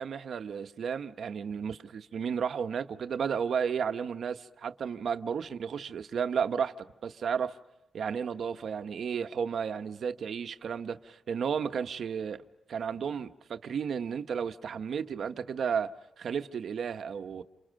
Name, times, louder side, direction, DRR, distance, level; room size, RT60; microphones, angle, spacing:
voice 1, 0.0-7.5 7.9-12.4 12.7-17.4, right 7 dB, 60° right, 1.0 m, -33 dB
28.5 x 28.0 x 6.3 m
wide cardioid pair, 165°, 0 cm